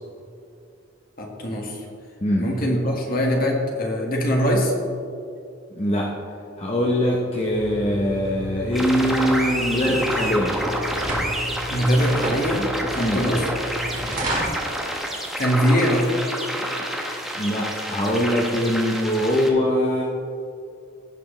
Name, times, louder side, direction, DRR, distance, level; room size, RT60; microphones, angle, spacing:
voice 1, 1.2-1.8 2.4-4.7 11.7-13.4 15.4-16.1, equal, 50° left, 0 dB, 1.6 m, -22 dB
voice 2, 5.7-6.1 6.6-10.6 12.9-13.3 17.3-20.0, equal, 30° left, -2 dB, 0.8 m, -22 dB
sound 1, 7.4-14.5, right 1 dB, 45° right, 2.5 m, -32 dB
sound 2, 8.7-19.5, equal, ahead, 1.0 m, -28 dB
16.5 x 6.0 x 3.2 m, 2.5 s
head